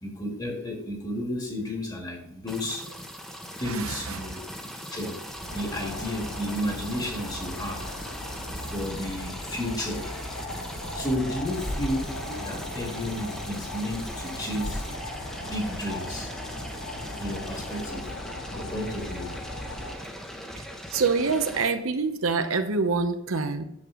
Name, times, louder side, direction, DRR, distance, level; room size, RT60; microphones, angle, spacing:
voice 1, 0.0-2.9 3.6-4.4 4.9-5.2 5.5-7.9 8.6-10.1 10.9-14.8 15.3-16.3 17.2-18.1 18.5-19.3, left 1 dB, 20° left, 2 dB, 1.7 m, -32 dB
sound 1, 2.5-21.7, equal, ahead, 0.8 m, -40 dB
voice 2, 3.6-4.2 20.6-23.6, right 4 dB, 75° right, 8 dB, 0.8 m, -26 dB
sound 2, 5.2-19.9, left 1 dB, 60° left, 1.8 m, -37 dB
9.6 x 6.8 x 3.8 m, 0.79 s
head